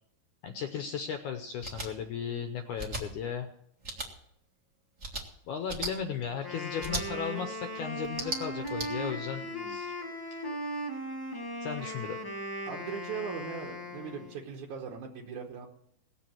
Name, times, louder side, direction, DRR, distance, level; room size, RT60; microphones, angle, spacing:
voice 1, 0.4-3.5 5.5-9.9 11.6-12.2, left 7 dB, 80° left, 6 dB, 1.8 m, -36 dB
sound 1, 1.6-1.9 2.8-3.0 3.8-4.1 5.0-5.2 5.7-5.9 6.8-7.0 8.0-8.9, right 2 dB, 35° right, 1.3 m, -36 dB
Wind instrument woodwind instrument, 6.3-14.4, equal, 30° left, 0.4 m, -38 dB
voice 2, 9.4-9.8 12.7-15.7, right 6 dB, 65° right, -1 dB, 2.1 m, -40 dB
18.5 x 7.3 x 7.6 m, 0.74 s
omnidirectional pair, 4.5 m